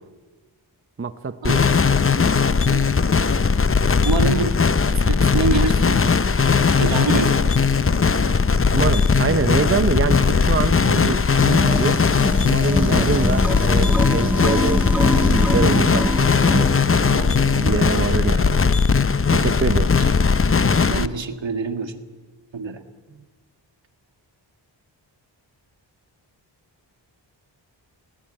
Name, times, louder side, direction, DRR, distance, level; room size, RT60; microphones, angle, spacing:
voice 1, 1.0-1.6 8.7-12.0 12.4-16.1 16.4-16.7 17.3-18.6 19.3-19.9, right 5 dB, 30° right, 11 dB, 0.8 m, -25 dB
sound 1, 1.4-21.1, left 5 dB, 30° left, 0.7 m, -18 dB
voice 2, 4.0-4.6 4.9-6.2 6.8-7.5 17.1-17.7 20.0-20.1 20.9-21.9 22.5-22.8, right 4 dB, 70° right, 6 dB, 1.9 m, -26 dB
sound 2, 11.4-17.8, equal, 5° right, 1.0 m, -26 dB
21.0 x 17.5 x 9.0 m, 1.3 s
wide cardioid pair, 65°, 46 cm